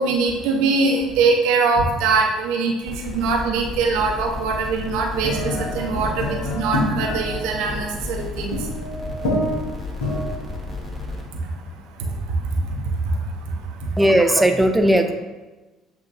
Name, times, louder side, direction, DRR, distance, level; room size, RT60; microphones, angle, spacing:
voice 1, 0.0-8.6, right 4 dB, 70° right, 1 dB, 0.6 m, -22 dB
sound 1, 2.8-11.2, left 3 dB, 20° left, 1.0 m, -33 dB
sound 2, 5.2-11.5, left 1 dB, 70° left, 1.1 m, -28 dB
voice 2, 14.0-15.1, right 1 dB, 10° right, 5 dB, 0.4 m, -16 dB
7.4 x 2.6 x 2.6 m, 1.2 s
hypercardioid pair, 55°, 0 cm